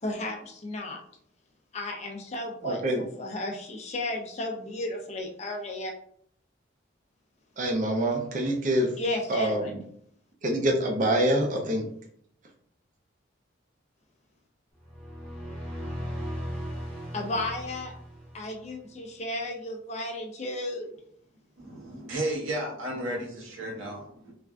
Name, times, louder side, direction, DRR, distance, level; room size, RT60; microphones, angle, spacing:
voice 1, 0.0-1.0 1.7-5.9 9.0-9.7 17.1-17.9 18.3-20.9, left 2 dB, 35° left, 2 dB, 0.4 m, -34 dB
voice 2, 2.6-3.1 7.6-9.0 9.3-9.8 10.4-11.9, right 1 dB, 40° right, 2 dB, 0.5 m, -26 dB
sound 1, 14.8-18.7, equal, 5° left, 0.8 m, -37 dB
voice 3, 21.6-24.3, right 1 dB, 80° right, -2 dB, 0.9 m, -33 dB
3.3 x 2.4 x 2.3 m, 0.65 s
head